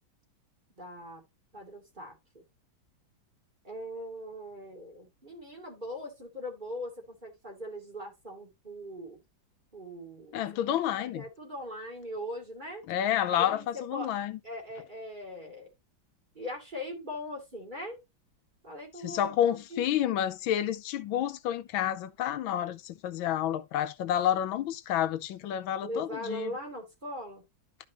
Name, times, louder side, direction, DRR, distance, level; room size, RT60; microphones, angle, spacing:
voice 1, 0.8-1.2 1.5-2.4 3.6-9.2 9.7-10.4 11.0-12.8 13.3-14.1 14.4-15.7 16.3-18.0 18.6-19.8 25.8-27.5, equal, 25° right, 2.6 m, -40 dB
voice 2, 10.3-11.2 12.9-14.4 19.0-26.5, left 11 dB, 85° left, 1.5 m, -29 dB
11.5 x 5.2 x 2.9 m
omnidirectional pair, 2.2 m